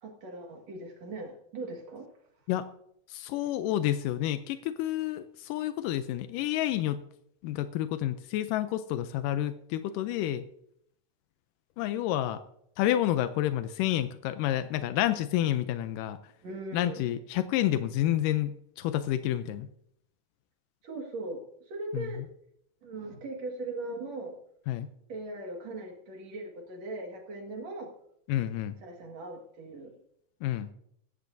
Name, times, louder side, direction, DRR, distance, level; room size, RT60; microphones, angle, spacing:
voice 1, 0.0-2.1 16.4-17.0 20.8-21.4 21.7-22.2 22.8-24.3 25.1-27.9 28.8-30.0, right 2 dB, 55° right, 1 dB, 3.0 m, -39 dB
voice 2, 3.1-7.0 7.4-10.4 11.8-12.4 12.8-16.2 16.7-19.7 21.9-22.1 24.7-24.9 28.3-28.8 30.4-30.7, left 12 dB, 85° left, 11 dB, 2.2 m, -29 dB
16.5 x 14.5 x 2.7 m, 0.71 s
omnidirectional pair, 3.7 m